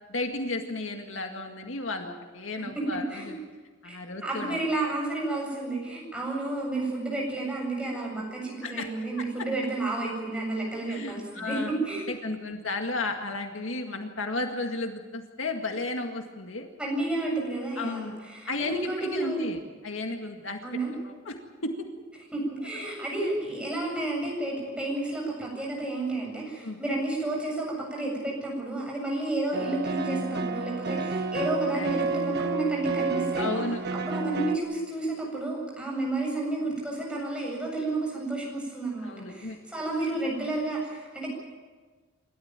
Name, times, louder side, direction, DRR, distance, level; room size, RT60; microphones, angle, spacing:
voice 1, 0.1-3.4 3.8-4.6 8.6-9.0 10.9-11.7 12.1-16.7 17.8-18.2 18.5-20.6 20.9-21.4 21.6-21.9 22.8-22.9 26.6-26.8 31.8-31.9 33.4-33.8 39.0-39.6, left 2 dB, 70° left, 4 dB, 2.0 m, -33 dB
voice 2, 3.8-12.3 16.8-19.5 20.6-20.9 22.3-33.6 33.9-41.3, right 2 dB, 5° right, -2 dB, 7.8 m, -31 dB
sound 1, 29.5-34.6, right 4 dB, 55° right, 1.6 m, -30 dB
28.0 x 13.5 x 9.1 m, 1.4 s
head